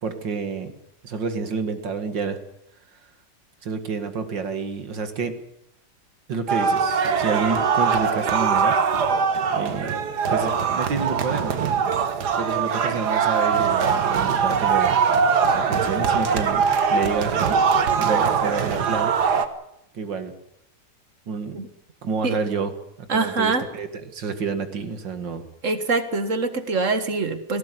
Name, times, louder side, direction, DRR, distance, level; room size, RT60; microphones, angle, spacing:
voice 1, 0.0-0.7 1.0-2.4 3.6-5.4 6.3-8.8 9.5-10.0 10.3-11.6 12.4-15.0 15.5-17.6 18.0-19.1 19.9-20.3 21.3-21.6 22.0-22.7 23.1-25.4, right 5 dB, 90° right, 8 dB, 2.7 m, -29 dB
sound 1, 6.5-19.5, right 6 dB, 65° right, 1.9 m, -22 dB
voice 2, 23.1-23.6 25.6-27.6, right 3 dB, 45° right, 10 dB, 2.0 m, -24 dB
19.0 x 17.0 x 9.7 m, 0.77 s
omnidirectional pair, 1.9 m